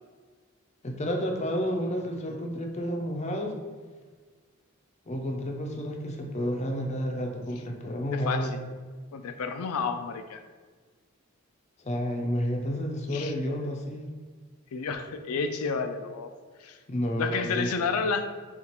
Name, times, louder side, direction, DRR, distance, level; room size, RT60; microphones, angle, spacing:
voice 1, 0.8-3.5 5.1-8.5 11.8-14.2 16.9-17.7, equal, 30° left, 2 dB, 0.5 m, -30 dB
voice 2, 8.1-8.6 9.1-10.4 13.1-13.3 14.7-16.3 16.6-16.8 17.2-18.3, left 5 dB, 85° left, 8 dB, 0.4 m, -30 dB
7.1 x 2.4 x 2.9 m, 1.5 s
head